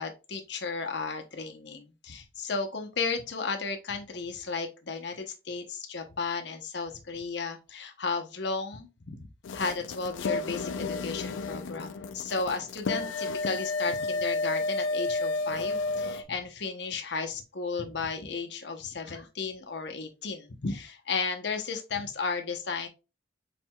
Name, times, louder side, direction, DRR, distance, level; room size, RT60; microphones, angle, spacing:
voice 1, 0.0-22.9, left 4 dB, 60° left, 0.8 m, -34 dB
sound 1, 9.4-16.2, left 3 dB, 80° left, 0.4 m, -31 dB
4.5 x 4.3 x 2.2 m
head